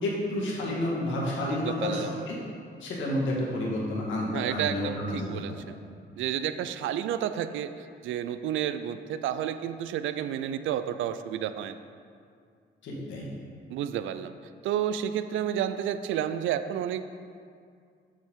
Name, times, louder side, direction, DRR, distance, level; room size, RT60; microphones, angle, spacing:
voice 1, 0.0-2.4 2.8-5.7 12.8-13.3, left 1 dB, 75° left, -4 dB, 2.0 m, -30 dB
voice 2, 1.4-2.2 4.3-5.8 6.2-11.8 13.7-14.3 14.6-17.0, right 10 dB, 75° right, 11 dB, 0.4 m, -31 dB
7.5 x 7.3 x 3.7 m, 2.3 s
cardioid pair, 90°, 20 cm